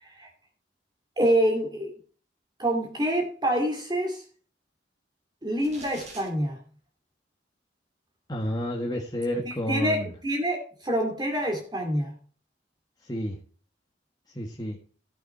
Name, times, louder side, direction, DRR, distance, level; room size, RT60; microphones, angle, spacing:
voice 1, 1.2-1.9 2.6-4.2 5.4-6.6 9.4-12.1, right 1 dB, 25° right, 2 dB, 2.5 m, -26 dB
sound 1, 5.6-6.3, right 2 dB, 40° right, 5.6 m, -45 dB
voice 2, 8.3-10.1 13.0-13.4 14.3-14.8, equal, 20° left, 0 dB, 1.7 m, -30 dB
16.0 x 6.5 x 4.4 m, 0.38 s
head